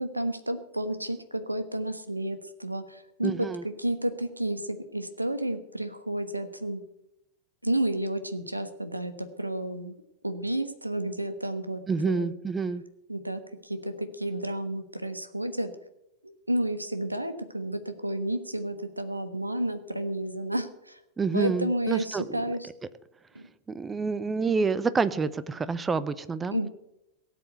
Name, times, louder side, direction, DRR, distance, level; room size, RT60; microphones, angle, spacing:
voice 1, 0.0-3.5 3.8-6.8 7.6-9.9 10.2-11.8 12.1-12.3 13.1-15.7 16.5-21.0 21.3-22.7 23.3-23.5 26.5-26.7, right 1 dB, 85° right, 11 dB, 1.2 m, -31 dB
voice 2, 3.2-3.6 11.9-12.8 21.2-22.4 23.7-26.6, right 4 dB, 15° right, 16 dB, 0.7 m, -28 dB
17.5 x 7.8 x 8.0 m, 0.87 s
figure-of-eight pair, 90°, 0 cm